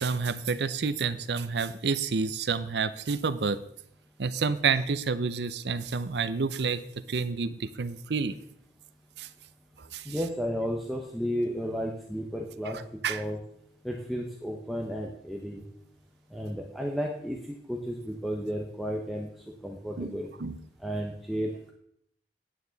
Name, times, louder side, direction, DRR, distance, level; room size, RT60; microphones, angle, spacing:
voice 1, 0.0-3.6 4.2-6.8 7.1-8.4 9.2-9.3 9.8-10.1 13.0-13.2 20.0-20.1 20.4-20.6, right 5 dB, 70° right, 13 dB, 0.6 m, -29 dB
voice 2, 10.1-12.8 13.1-13.4 13.8-15.6 16.3-19.3 19.6-20.3 20.8-21.7, equal, ahead, -1 dB, 0.8 m, -33 dB
9.3 x 8.8 x 4.0 m, 0.71 s
head